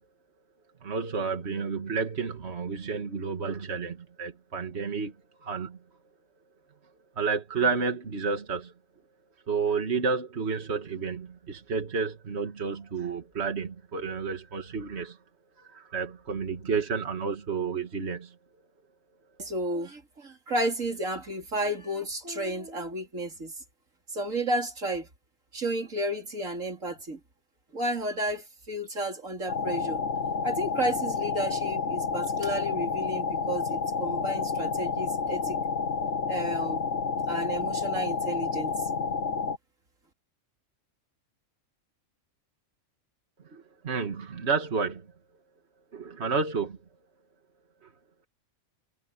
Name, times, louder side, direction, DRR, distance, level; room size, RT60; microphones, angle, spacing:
voice 1, 0.8-5.1 5.4-5.8 7.2-8.7 9.5-15.2 15.6-18.3 43.5-45.1 45.9-46.8 47.8-47.9, right 5 dB, 55° right, 2.1 m, -31 dB
voice 2, 19.4-23.5 24.1-25.1 25.5-27.2 27.7-30.0 30.4-35.6 36.3-36.8 37.3-38.7, right 1 dB, 85° right, 4.2 m, -32 dB
sound 1, 29.5-39.6, left 5 dB, 65° left, 1.3 m, -30 dB
omnidirectional pair, 1.3 m